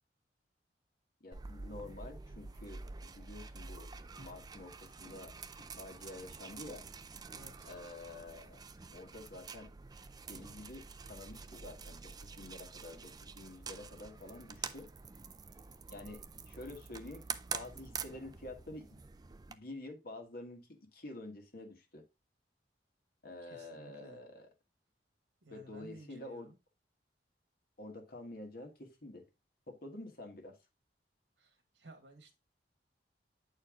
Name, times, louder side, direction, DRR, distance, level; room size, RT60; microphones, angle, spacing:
voice 1, 1.2-3.9 4.2-6.8 7.6-8.6 8.9-9.7 10.3-14.9 15.9-17.2 17.5-18.8 19.5-22.0 23.2-24.5 25.5-26.5 27.8-29.2 29.7-30.6, left 2 dB, 55° left, 4 dB, 1.5 m, -48 dB
sound 1, 1.3-19.6, right 5 dB, 20° right, 0.4 m, -47 dB
voice 2, 7.3-7.8 23.4-24.2 25.4-26.6 31.4-32.4, right 1 dB, 85° right, 6 dB, 1.9 m, -56 dB
8.7 x 4.4 x 3.7 m, 0.27 s
head